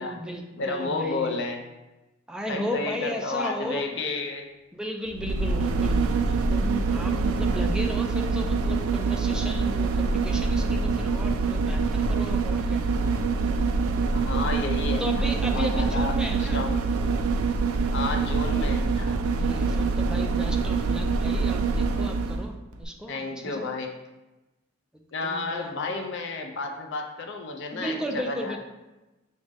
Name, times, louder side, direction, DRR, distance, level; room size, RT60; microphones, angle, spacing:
voice 1, 0.0-1.4 2.3-3.9 4.7-12.8 15.0-16.6 19.3-23.7 24.9-26.0 27.7-28.6, equal, 5° right, 2 dB, 0.3 m, -35 dB
voice 2, 0.6-1.6 2.5-4.4 7.1-7.4 14.1-16.1 16.4-16.8 17.9-19.1 23.1-23.9 25.1-28.6, left 3 dB, 60° left, 3 dB, 0.5 m, -31 dB
sound 1, 5.1-22.5 22.8-22.9, right 4 dB, 85° right, 0.3 m, -25 dB
6.1 x 2.1 x 3.3 m, 1.1 s
head